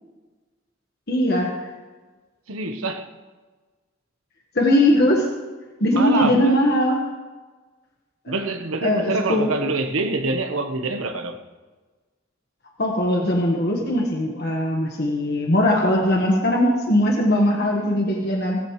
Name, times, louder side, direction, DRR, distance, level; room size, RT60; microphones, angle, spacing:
voice 1, 1.1-1.5 4.5-5.3 5.8-7.0 8.8-9.6 12.8-18.6, left 1 dB, 50° left, 1.5 m, -20 dB
voice 2, 2.5-3.1 5.9-6.6 8.3-11.4, right 3 dB, 90° right, 1.2 m, -25 dB
17.0 x 14.0 x 3.2 m
head